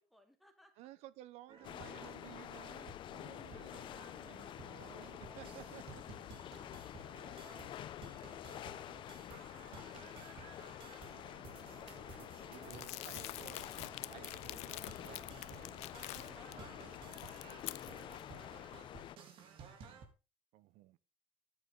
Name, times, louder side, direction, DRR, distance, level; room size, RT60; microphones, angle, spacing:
voice 1, 0.0-0.7 17.9-19.3 19.7-19.8, equal, ahead, 6 dB, 2.9 m, -70 dB
voice 2, 0.8-6.3 11.1-17.3 20.5-21.0, right 15 dB, 80° right, 17 dB, 1.1 m, -57 dB
sound 1, 1.5-20.1, right 5 dB, 55° right, 3.8 m, -55 dB
sound 2, 1.6-19.2, left 12 dB, 50° left, 0.8 m, -49 dB
Crumpling crinkling, 12.7-16.5 16.9-18.2, left 20 dB, 80° left, 0.5 m, -47 dB
14.0 x 11.0 x 4.0 m, 0.31 s
cardioid pair, 155°, 11 cm